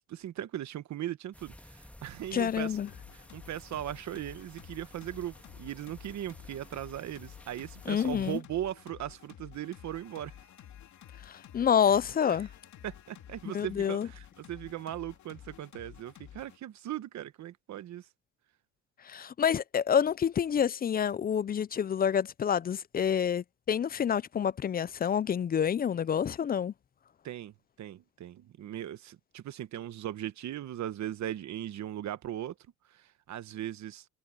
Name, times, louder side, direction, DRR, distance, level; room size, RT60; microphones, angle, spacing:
voice 1, 0.1-2.8 3.1-10.4 12.8-18.1 27.2-27.5 27.8-32.5 32.9-34.1, right 12 dB, 65° right, 1.1 m, -38 dB
sound 1, 1.3-8.4, left 1 dB, 5° left, 1.7 m, -54 dB
voice 2, 2.3-2.9 7.9-8.4 11.3-12.5 13.5-14.1 19.0-26.7, left 8 dB, 30° left, 0.4 m, -28 dB
sound 2, 2.9-16.6, left 10 dB, 70° left, 2.7 m, -52 dB
cardioid pair, 90°, 30 cm